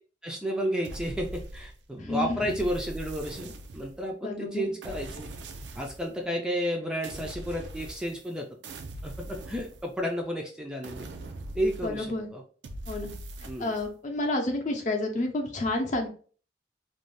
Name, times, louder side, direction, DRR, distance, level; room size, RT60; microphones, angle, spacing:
voice 1, 0.2-5.3 5.8-8.5 9.0-11.1 11.5-12.1 12.3-12.4 13.5-13.7, equal, 5° right, 1 dB, 0.4 m, -32 dB
sound 1, 0.8-2.0 2.5-4.1 4.8-6.1 7.0-8.3 8.6-10.2 10.8-12.2 12.6-13.9, right 2 dB, 80° right, 0.4 m, -41 dB
voice 2, 2.0-2.4 4.2-4.7 11.8-12.3 12.9-13.1 13.6-16.1, left 2 dB, 45° left, 3 dB, 0.6 m, -30 dB
2.5 x 2.3 x 3.2 m, 0.41 s
head